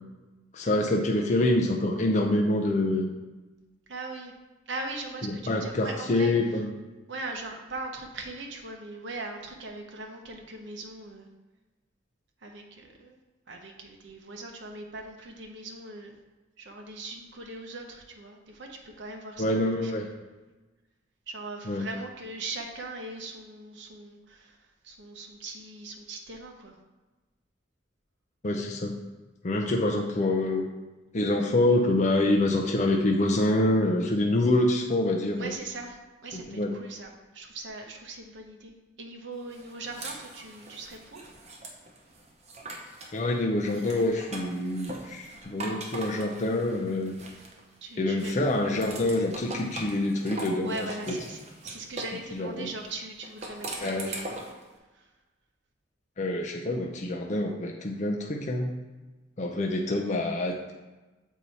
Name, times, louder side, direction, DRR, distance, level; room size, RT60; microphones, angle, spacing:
voice 1, 0.5-3.1 5.2-6.7 19.4-20.1 21.7-21.9 28.4-29.0 29.4-30.7 31.1-35.5 36.3-36.8 43.1-47.2 48.0-50.9 52.3-52.7 53.8-54.1 56.2-58.8 59.4-60.7, left 1 dB, 35° left, 0 dB, 0.5 m, -26 dB
voice 2, 3.9-4.3 4.7-6.6 7.1-11.3 12.4-13.2 13.5-16.2 16.6-20.1 21.3-26.8 35.4-41.3 47.8-48.3 50.6-54.4 54.9-55.1, right 2 dB, 65° right, 2 dB, 0.9 m, -40 dB
sound 1, 39.5-43.2 43.6-47.8 48.2-52.2 53.2-54.6, right 2 dB, 35° right, 0.8 m, -41 dB
6.9 x 4.5 x 4.1 m, 1.2 s
head